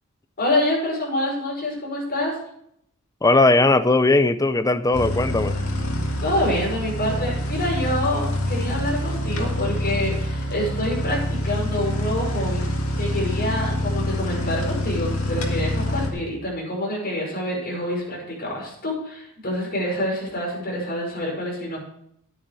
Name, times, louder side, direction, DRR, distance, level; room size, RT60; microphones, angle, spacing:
voice 1, 0.4-2.4 6.2-12.6 13.0-21.8, left 1 dB, 45° left, -3 dB, 5.8 m, -26 dB
voice 2, 3.2-5.6, left 2 dB, 15° left, 11 dB, 0.5 m, -18 dB
sound 1, 4.9-16.1, left 1 dB, 80° left, 2.2 m, -26 dB
11.5 x 9.0 x 4.8 m, 0.71 s
head